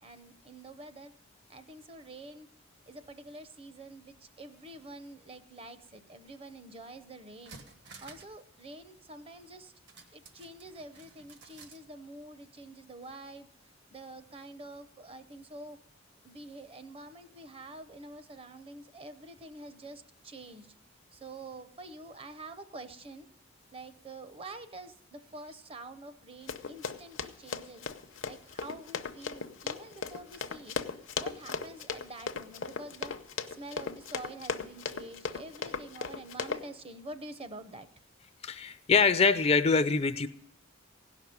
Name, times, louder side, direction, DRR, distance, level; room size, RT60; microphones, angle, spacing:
voice 1, 0.0-1.1 1.5-2.5 2.9-7.6 8.0-9.7 10.1-13.5 13.9-15.8 16.2-20.7 21.1-23.3 23.7-27.9 28.3-30.8 31.2-33.1 33.5-37.9, right 2 dB, 30° right, 10 dB, 0.7 m, -47 dB
sound 1, 6.8-6.9 7.3-8.4 8.7-8.8 9.9-11.8 12.2-12.3, right 4 dB, 60° right, 1.2 m, -53 dB
Run, 26.5-36.6, left 5 dB, 70° left, 0.7 m, -37 dB
voice 2, 38.4-40.3, left 4 dB, 30° left, 11 dB, 0.5 m, -24 dB
16.5 x 5.9 x 9.3 m, 0.76 s
head